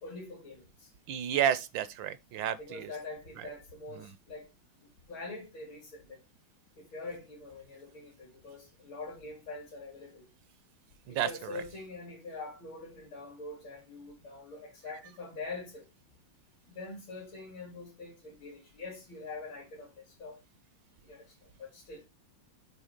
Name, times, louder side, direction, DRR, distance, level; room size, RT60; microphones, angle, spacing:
voice 1, 0.0-0.9 2.6-4.5 5.1-6.2 6.8-10.3 11.1-15.9 16.7-20.4 21.0-22.0, left 3 dB, 75° left, 3.2 m, -44 dB
voice 2, 1.1-2.9 3.4-3.5 4.0-4.1 11.1-11.6, right 9 dB, 75° right, 1.2 m, -31 dB
7.5 x 3.4 x 5.1 m
omnidirectional pair, 2.2 m